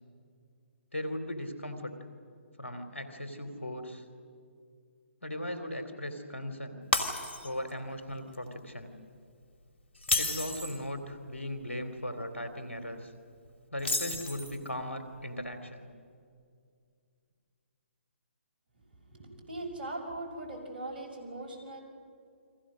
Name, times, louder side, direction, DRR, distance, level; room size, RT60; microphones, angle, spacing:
voice 1, 0.9-1.9 2.6-4.0 5.2-6.8 7.4-8.9 10.2-13.1 13.7-15.9, left 1 dB, 85° left, 7 dB, 3.3 m, -38 dB
Shatter, 6.9-7.7 8.1-8.3 9.9-10.8 13.8-14.7, left 2 dB, 65° left, 3.0 m, -31 dB
voice 2, 19.0-21.8, right 2 dB, 45° right, 2 dB, 6.0 m, -40 dB
30.0 x 24.0 x 6.4 m, 2.3 s
figure-of-eight pair, 135°, 7 cm